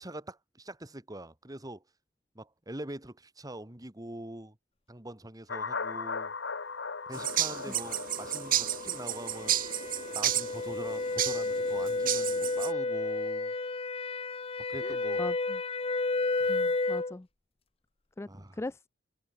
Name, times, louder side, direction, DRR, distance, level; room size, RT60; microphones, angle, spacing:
voice 1, 0.0-1.8 2.4-4.6 4.9-6.3 7.1-9.6 10.1-13.5 14.7-15.2 16.4-16.5 18.3-18.6, right 1 dB, 20° right, 2.1 m, -43 dB
sound 1, 5.5-11.1, left 4 dB, 85° left, 1.5 m, -39 dB
sound 2, 7.1-12.7, right 12 dB, 50° right, 1.4 m, -32 dB
sound 3, 7.2-17.1, left 3 dB, 35° left, 0.8 m, -32 dB
voice 2, 14.8-15.6 16.5-17.3 18.2-18.3 18.6-18.9, left 2 dB, 15° left, 0.4 m, -40 dB
head